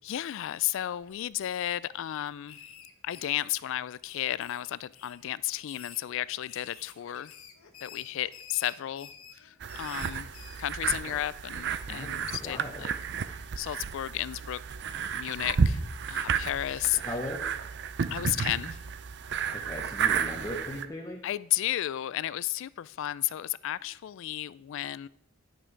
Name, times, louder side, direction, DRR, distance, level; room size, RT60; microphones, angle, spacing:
voice 1, 0.0-2.6 3.0-7.3 7.8-10.3 10.6-12.9 13.3-14.6 15.1-17.0 18.1-18.8 21.2-25.1, left 13 dB, 65° left, 0.3 m, -33 dB
sound 1, 1.0-1.8 2.1-3.7 4.0-5.2 5.6-10.6, left 7 dB, 85° left, 1.1 m, -50 dB
sound 2, 9.6-20.9, right 6 dB, 55° right, 0.5 m, -32 dB
voice 2, 11.9-12.9 16.9-17.5 19.5-21.2, left 1 dB, 15° left, 0.9 m, -38 dB
10.5 x 6.2 x 4.6 m
head